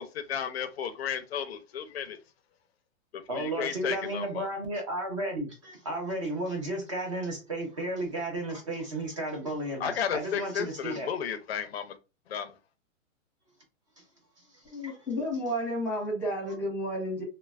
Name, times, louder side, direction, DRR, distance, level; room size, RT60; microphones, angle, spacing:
voice 1, 0.0-2.2 3.1-4.5 9.8-12.0 12.3-12.5, left 8 dB, 50° left, 0.5 m, -33 dB
voice 2, 3.3-11.1 14.5-15.0 15.9-16.0, right 1 dB, 25° right, 0.4 m, -33 dB
voice 3, 14.6-17.2, equal, 5° left, 0.8 m, -31 dB
3.1 x 2.1 x 2.3 m
hypercardioid pair, 165°, 41 cm